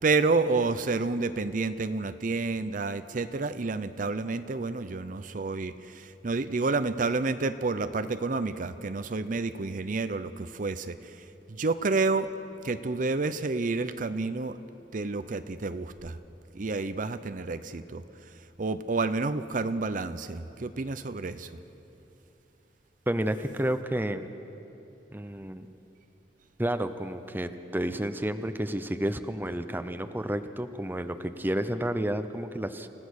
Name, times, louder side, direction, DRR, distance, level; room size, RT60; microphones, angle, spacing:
voice 1, 0.0-12.3 12.6-14.6 14.9-16.2 16.5-18.0 18.6-21.5, right 3 dB, 50° right, 11 dB, 0.6 m, -29 dB
voice 2, 23.1-24.3 25.1-25.7 26.6-32.9, right 1 dB, 10° right, 9 dB, 0.7 m, -31 dB
28.5 x 16.0 x 6.4 m, 2.9 s
head